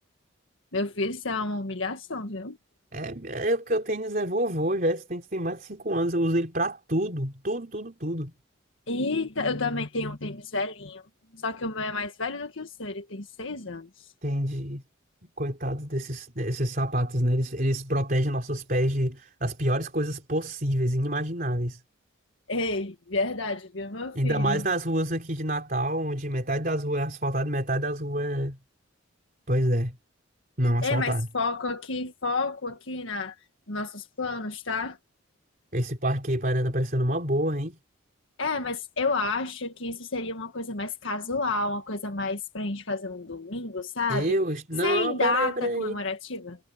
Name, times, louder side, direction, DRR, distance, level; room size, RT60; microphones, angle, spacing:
voice 1, 0.7-2.6 8.9-11.0 11.3-14.1 22.5-24.6 30.8-33.3 33.7-35.0 38.4-44.4 44.8-46.6, left 3 dB, 75° left, 1.7 m, -30 dB
voice 2, 2.9-8.3 14.2-14.8 15.4-21.8 24.1-28.6 29.5-30.0 30.6-31.3 35.7-37.8 44.1-46.0, right 1 dB, 45° right, 3.8 m, -27 dB
head